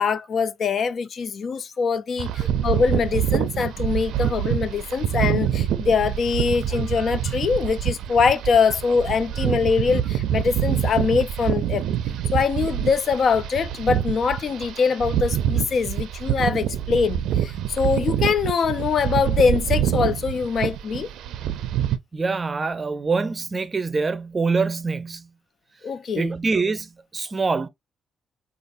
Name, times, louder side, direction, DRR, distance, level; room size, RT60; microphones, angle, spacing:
voice 1, 0.0-11.9 12.3-21.1 25.8-26.3, left 5 dB, 55° left, 0.4 m, -23 dB
sound 1, 2.2-22.0, right 10 dB, 80° right, 0.5 m, -26 dB
voice 2, 22.1-25.3 26.1-27.7, right 4 dB, 30° right, 0.5 m, -25 dB
5.2 x 2.4 x 2.5 m
cardioid pair, 90°, 0 cm